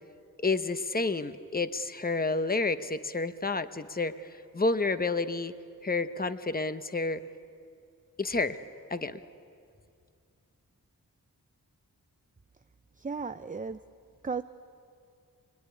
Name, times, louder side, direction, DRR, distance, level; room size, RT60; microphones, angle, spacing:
voice 1, 0.4-5.5 5.8-7.2 8.2-8.6 8.9-9.2, left 3 dB, 25° left, 11 dB, 1.0 m, -30 dB
voice 2, 13.0-13.8 14.2-14.4, right 4 dB, 25° right, 10 dB, 0.6 m, -34 dB
25.0 x 23.5 x 9.9 m, 2.4 s
wide cardioid pair, 70°, 35 cm